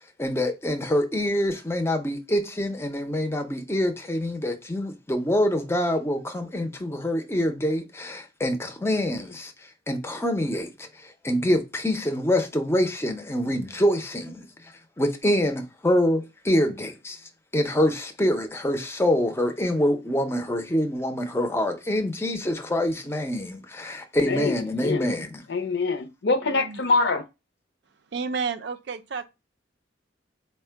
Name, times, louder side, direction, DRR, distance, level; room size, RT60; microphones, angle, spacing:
voice 1, 0.2-9.5 9.9-10.9 11.2-14.4 15.0-17.2 17.5-25.4, left 1 dB, 15° left, 0.5 m, -25 dB
voice 2, 24.2-25.1 25.5-27.2, left 3 dB, 65° left, 0.6 m, -25 dB
voice 3, 26.4-26.8 28.1-29.3, right 5 dB, 65° right, 0.4 m, -31 dB
4.2 x 2.2 x 4.4 m
head